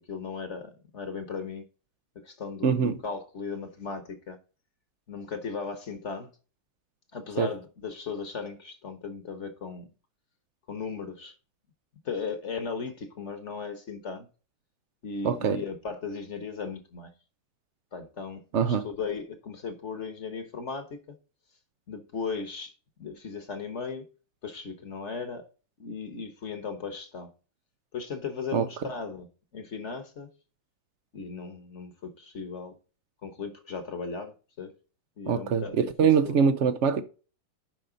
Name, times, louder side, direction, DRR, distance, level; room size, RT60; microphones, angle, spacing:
voice 1, 0.0-1.6 2.2-4.4 5.1-6.3 7.1-9.9 10.7-11.3 12.0-14.3 15.0-17.1 17.9-21.2 21.9-22.7 23.0-24.1 24.4-25.5 25.8-27.3 27.9-29.3 29.5-30.3 31.1-32.8 33.2-34.7 35.2-36.3, left 5 dB, 45° left, 1.2 m, -37 dB
voice 2, 2.6-3.0 7.4-7.5 15.2-15.6 18.5-18.8 28.5-28.6 35.3-37.0, right 6 dB, 90° right, 0.6 m, -23 dB
11.0 x 5.4 x 3.9 m
omnidirectional pair, 2.2 m